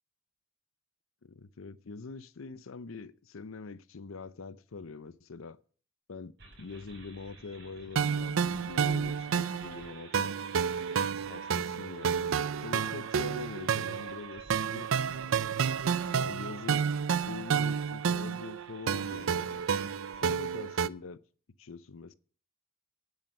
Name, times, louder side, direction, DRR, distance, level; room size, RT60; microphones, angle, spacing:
voice 1, 1.2-5.6 6.1-10.4 11.3-14.4 14.7-14.9 16.1-16.8 17.1-19.6 20.2-21.2 21.6-22.1, left 4 dB, 85° left, 0.6 m, -44 dB
sound 1, 6.4-20.3, right 2 dB, 55° right, 5.8 m, -54 dB
sound 2, 8.0-20.9, right 7 dB, 80° right, 0.5 m, -30 dB
9.8 x 8.8 x 6.5 m
head